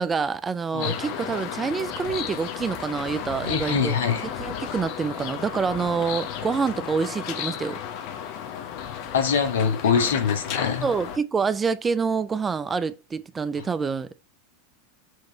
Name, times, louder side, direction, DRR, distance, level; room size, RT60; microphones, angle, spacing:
voice 1, 0.0-3.9 4.2-7.8 10.8-14.2, right 5 dB, 20° right, 0.5 m, -27 dB
sound 1, 0.8-11.2, left 9 dB, 55° left, 1.0 m, -33 dB
voice 2, 3.4-4.2 9.1-10.9, left 6 dB, 75° left, 1.4 m, -23 dB
6.4 x 3.2 x 5.1 m
hypercardioid pair, 90°, 0 cm